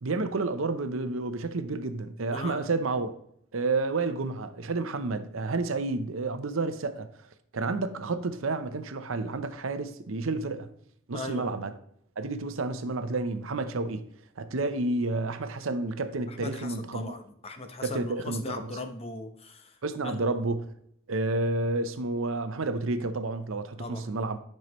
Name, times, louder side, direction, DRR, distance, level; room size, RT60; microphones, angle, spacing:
voice 1, 0.0-3.1 3.5-7.1 7.5-10.7 11.1-11.7 12.2-14.0 14.4-17.1 17.8-18.7 19.8-20.7 21.1-24.4, right 3 dB, 75° right, 0.7 m, -30 dB
voice 2, 2.3-2.7 11.1-11.5 16.3-19.8 20.0-20.2 23.8-24.1, left 2 dB, 30° left, 0.8 m, -38 dB
10.5 x 5.6 x 3.1 m
head